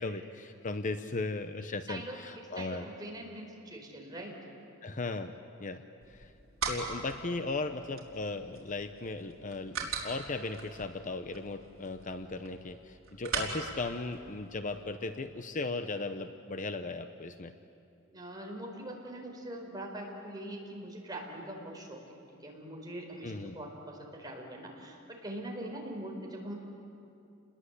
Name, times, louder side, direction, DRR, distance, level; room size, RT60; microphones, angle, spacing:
voice 1, 0.0-2.9 4.8-5.3 5.6-5.8 6.1-6.3 6.7-17.5 23.2-23.6, left 3 dB, 40° left, 9 dB, 0.8 m, -37 dB
voice 2, 1.9-2.2 2.6-4.4 18.1-22.0 22.4-26.5, right 1 dB, 20° right, 0 dB, 4.6 m, -42 dB
sound 1, 6.0-14.9, right 4 dB, 75° right, 4.2 m, -41 dB
29.0 x 21.0 x 8.4 m, 2.6 s
head